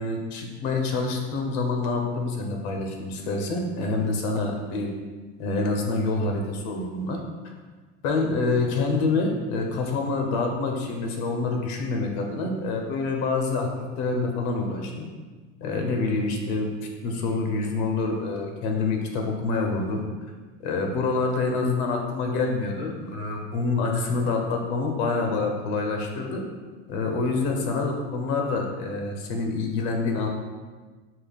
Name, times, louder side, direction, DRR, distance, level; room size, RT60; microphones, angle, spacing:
voice 1, 0.0-4.9 5.4-7.2 8.0-13.7 14.0-15.1 15.6-16.7 17.0-20.0 20.6-26.4 26.9-30.3, left 3 dB, 70° left, 2 dB, 0.9 m, -26 dB
5.6 x 2.4 x 3.5 m, 1.4 s
cardioid pair, 175°, 33 cm